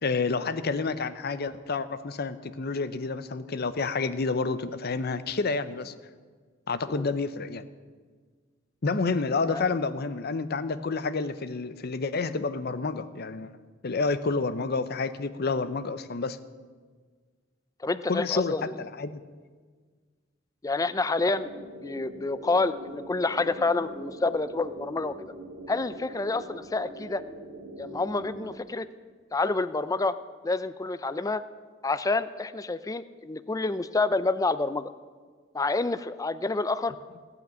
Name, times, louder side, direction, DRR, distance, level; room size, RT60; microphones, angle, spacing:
voice 1, 0.0-5.9 6.7-7.6 8.8-13.5 13.8-16.4 18.1-19.2, left 4 dB, 55° left, 13 dB, 0.7 m, -29 dB
voice 2, 17.8-18.6 20.6-21.5 21.8-25.3 25.7-27.2 27.8-28.9 29.3-30.1 30.4-31.4 31.8-34.9 35.5-36.9, left 3 dB, 20° left, 14 dB, 0.4 m, -28 dB
sound 1, 21.3-28.6, right 1 dB, 80° right, 1.8 m, -43 dB
17.0 x 6.0 x 9.1 m, 1.5 s
head